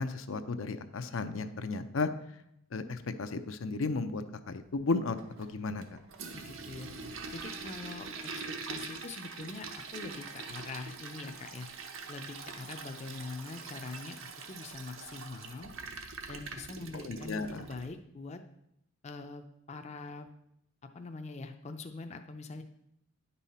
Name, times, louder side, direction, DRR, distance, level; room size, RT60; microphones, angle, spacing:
voice 1, 0.0-2.1 2.7-6.0 16.9-17.6, left 3 dB, 80° left, 9 dB, 0.6 m, -34 dB
Toilet flush, 5.2-17.9, right 4 dB, 80° right, 0.9 m, -44 dB
voice 2, 6.3-6.9 7.3-11.7 12.1-14.2 14.5-15.7 16.3-18.4 19.0-20.3 20.9-22.6, left 3 dB, 30° left, 6 dB, 0.5 m, -43 dB
10.0 x 5.5 x 4.2 m, 0.76 s
head